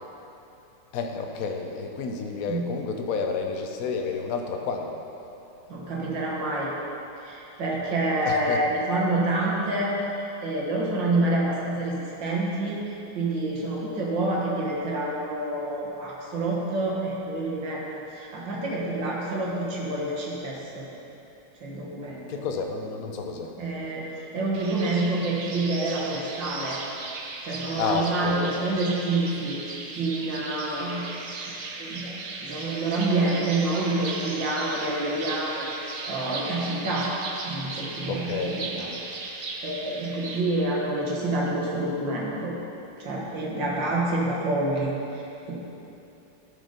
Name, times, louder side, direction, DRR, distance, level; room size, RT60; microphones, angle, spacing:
voice 1, 0.9-4.9 8.2-8.6 22.3-23.5 27.8-28.5 38.1-38.6, left 5 dB, 60° left, 3 dB, 0.9 m, -30 dB
voice 2, 5.7-6.7 7.2-10.0 10.4-12.8 13.1-17.9 18.1-20.9 21.6-22.4 23.6-24.1 24.3-26.8 27.4-31.1 31.7-32.1 32.4-35.7 36.1-37.1 37.4-38.9 39.2-42.6 43.0-45.2 45.5-45.6, right 2 dB, 60° right, -4 dB, 2.1 m, -27 dB
sound 1, 24.5-40.4, right 3 dB, 90° right, 0.6 m, -37 dB
12.0 x 5.4 x 5.1 m, 2.9 s
omnidirectional pair, 2.3 m